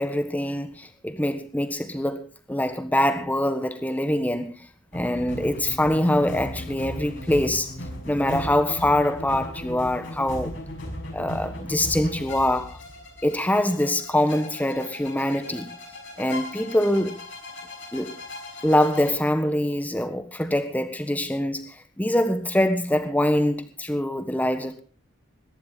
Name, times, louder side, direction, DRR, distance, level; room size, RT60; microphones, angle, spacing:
voice 1, 0.0-4.5 4.9-7.7 8.0-10.5 11.1-12.8 13.2-15.7 16.2-17.2 17.9-18.2 18.6-24.8, left 1 dB, 10° left, 1.5 m, -24 dB
sound 1, 4.9-19.1, left 1 dB, 65° left, 5.7 m, -37 dB
22.0 x 12.0 x 4.0 m
head